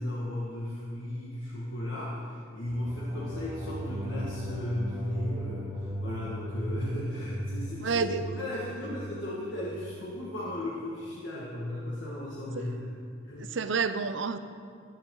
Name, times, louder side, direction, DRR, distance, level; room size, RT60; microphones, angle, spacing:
voice 1, 0.0-8.1 8.4-12.9 13.2-13.5, left 1 dB, 60° left, -6 dB, 1.9 m, -35 dB
sound 1, 2.7-10.0, right 1 dB, 20° right, 2.5 m, -38 dB
voice 2, 7.8-8.3 12.5-12.7 13.4-14.4, right 5 dB, 65° right, 11 dB, 0.6 m, -29 dB
14.5 x 12.5 x 3.9 m, 2.4 s
head